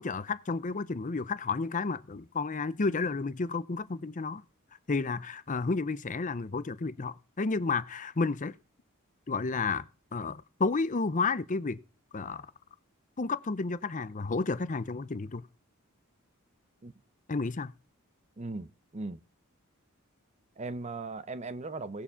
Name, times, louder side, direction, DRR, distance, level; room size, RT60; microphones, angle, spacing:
voice 1, 0.0-4.4 4.9-8.5 9.3-9.9 10.1-11.8 12.1-12.5 13.2-15.4 17.3-17.7, left 4 dB, 35° left, 0.6 m, -31 dB
voice 2, 18.4-19.2 20.6-22.0, right 3 dB, 30° right, 0.6 m, -38 dB
17.5 x 7.1 x 5.7 m
head